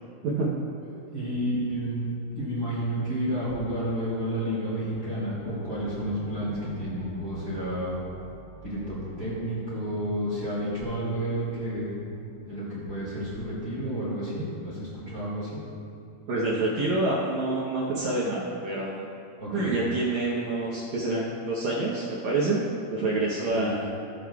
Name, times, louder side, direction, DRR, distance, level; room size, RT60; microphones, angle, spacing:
voice 1, 0.9-2.1 2.4-8.0 8.6-11.9 12.5-15.6 19.4-19.7 23.5-23.7, equal, 30° right, -8 dB, 2.1 m, -31 dB
sound 1, 4.3-15.4, equal, 85° left, 4.6 m, -50 dB
voice 2, 16.3-19.1 19.5-22.6 22.9-23.9, right 2 dB, 80° right, -6 dB, 1.6 m, -27 dB
17.0 x 7.5 x 2.3 m, 2.6 s
omnidirectional pair, 4.7 m